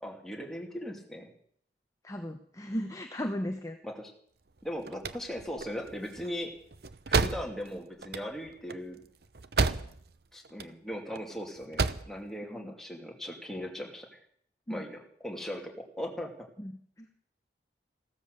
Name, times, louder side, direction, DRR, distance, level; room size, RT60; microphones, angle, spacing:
voice 1, 0.0-1.3 3.8-4.1 4.6-6.5 7.1-9.0 10.3-14.2 14.7-15.6 16.0-16.3, equal, ahead, 1 dB, 2.6 m, -38 dB
voice 2, 2.0-3.8 12.5-12.7 14.7-14.8 16.6-16.7 17.0-17.1, equal, 20° left, 5 dB, 1.0 m, -36 dB
sound 1, 4.6-10.2 10.4-11.2 11.6-12.1, right 4 dB, 60° right, 0.8 m, -31 dB
16.0 x 13.0 x 6.7 m, 0.66 s
head